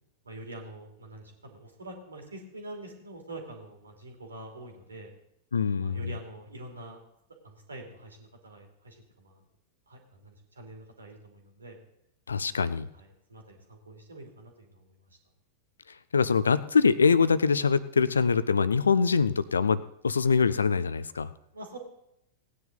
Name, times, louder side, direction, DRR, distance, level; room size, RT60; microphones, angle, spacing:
voice 1, 0.2-5.1 5.7-7.0 7.4-9.4 9.9-11.8 12.5-12.7 12.9-14.8 21.5-21.8, right 2 dB, 75° right, 2 dB, 2.9 m, -45 dB
voice 2, 5.5-6.1 12.3-12.9 16.1-21.3, left 5 dB, 75° left, 17 dB, 0.6 m, -24 dB
18.0 x 9.6 x 3.9 m, 0.77 s
figure-of-eight pair, 90°, 0 cm